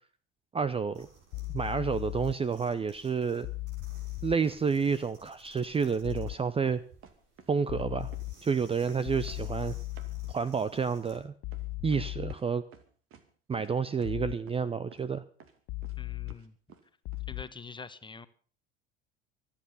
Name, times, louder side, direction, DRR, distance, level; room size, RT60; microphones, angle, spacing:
voice 1, 0.5-1.1 1.5-3.5 4.2-6.8 7.5-8.1 8.4-9.8 10.3-11.3 11.8-12.6 13.5-15.2, right 5 dB, 20° right, 17 dB, 0.7 m, -29 dB
pulling dental floss, 0.9-11.2, right 3 dB, 70° right, 6.0 m, -58 dB
sound 1, 1.3-2.3 3.4-4.4 6.0-6.4 7.7-8.3 9.1-10.3 11.4-12.4 14.0-14.4 15.7-16.3 17.1-17.4, left 22 dB, 50° left, 0.7 m, -37 dB
sound 2, 6.3-7.5 7.8-8.6 8.9-12.4 12.7-13.2 13.6-13.7 14.0-14.1 14.5-14.6 14.9-15.1 15.4-15.9 16.3-16.8 17.1-17.2, right 7 dB, 50° right, 2.5 m, -53 dB
voice 2, 16.0-16.5 17.3-18.3, left 5 dB, 15° left, 12 dB, 1.3 m, -45 dB
24.5 x 8.8 x 5.6 m, 0.42 s
hypercardioid pair, 75°, 29 cm